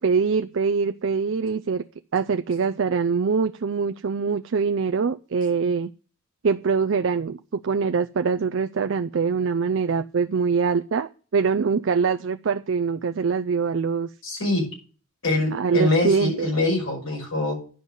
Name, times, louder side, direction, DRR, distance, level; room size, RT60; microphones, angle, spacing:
voice 1, 0.0-1.8 2.1-5.9 6.4-14.1 15.5-16.5, right 5 dB, 55° right, 0.4 m, -23 dB
voice 2, 14.2-14.6 15.2-17.6, left 2 dB, 70° left, 5.4 m, -24 dB
10.0 x 5.4 x 7.9 m
head